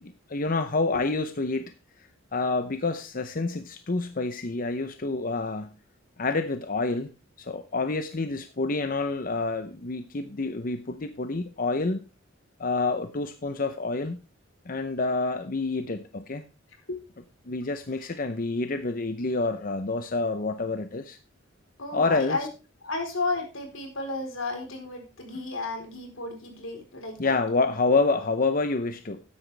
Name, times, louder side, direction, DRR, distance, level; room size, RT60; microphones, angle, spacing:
voice 1, 0.0-1.7 2.3-5.7 6.2-7.1 7.4-12.0 12.6-14.2 14.7-16.4 17.5-21.2 21.9-22.4 27.2-29.2, left 3 dB, 45° left, 9 dB, 0.8 m, -28 dB
voice 2, 21.8-22.5 22.8-27.3, left 3 dB, 90° left, 3 dB, 4.1 m, -33 dB
13.0 x 9.8 x 3.4 m, 0.30 s
head